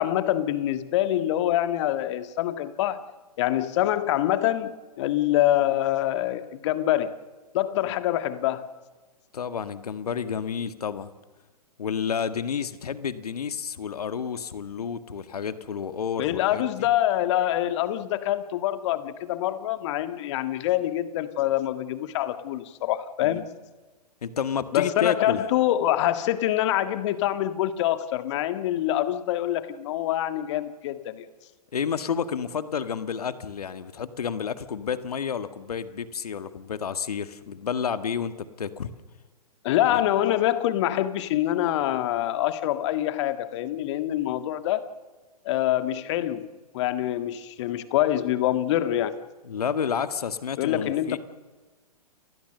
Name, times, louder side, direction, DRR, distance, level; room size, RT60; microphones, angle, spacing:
voice 1, 0.0-3.0 3.4-7.1 7.5-8.6 16.2-23.4 24.7-31.2 39.6-44.9 45.4-46.5 46.7-49.1 50.6-51.2, left 13 dB, 45° left, 11 dB, 1.8 m, -25 dB
voice 2, 9.3-11.1 11.8-16.9 23.2-23.4 24.2-25.4 31.7-38.9 39.9-40.0 49.4-51.2, left 7 dB, 70° left, 12 dB, 1.8 m, -30 dB
29.5 x 19.5 x 6.8 m, 1.3 s
figure-of-eight pair, 115°, 20 cm